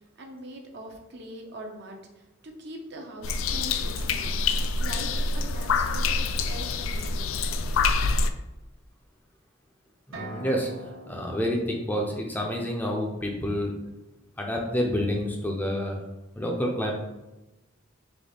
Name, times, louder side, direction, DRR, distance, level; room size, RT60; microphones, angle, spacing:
voice 1, 0.2-5.1 5.3-7.4, right 1 dB, 55° right, 2 dB, 0.7 m, -42 dB
sound 1, 3.2-8.3, left 4 dB, 90° left, 0.3 m, -26 dB
voice 2, 10.1-10.7 11.1-13.7 14.4-16.0 16.4-16.9, equal, 10° left, 0 dB, 0.5 m, -28 dB
sound 2, 10.1-13.9, right 2 dB, 75° right, 1.0 m, -45 dB
4.0 x 3.1 x 3.4 m, 1.0 s
head